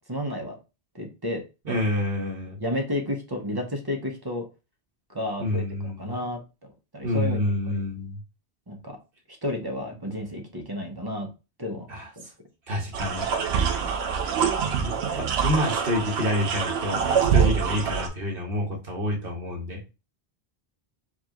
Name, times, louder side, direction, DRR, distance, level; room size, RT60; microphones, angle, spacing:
voice 1, 0.1-0.6 0.9-1.4 1.7-1.8 2.6-4.5 5.1-7.8 8.7-9.0 9.3-11.3 11.6-12.0 13.5-14.0, left 1 dB, 25° right, 2 dB, 0.7 m, -32 dB
voice 2, 1.6-2.6 5.4-6.1 7.0-8.2 11.9-12.1 12.7-13.3 13.9-14.0 14.6-19.9, left 1 dB, 60° right, 0 dB, 1.4 m, -28 dB
sound 1, 12.9-18.1, right 7 dB, 80° right, 0.9 m, -25 dB
4.6 x 2.4 x 2.9 m, 0.29 s
omnidirectional pair, 1.1 m